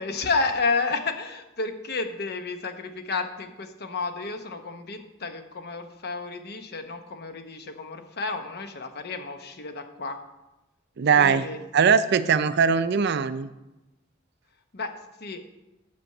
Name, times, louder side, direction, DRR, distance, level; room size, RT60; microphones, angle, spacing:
voice 1, 0.0-10.2 11.2-11.6 14.7-14.9 15.2-15.4, left 4 dB, 55° left, 7 dB, 1.0 m, -31 dB
voice 2, 11.0-11.5 11.7-13.5, right 6 dB, 55° right, 13 dB, 0.5 m, -20 dB
8.5 x 6.1 x 6.5 m, 1.0 s
head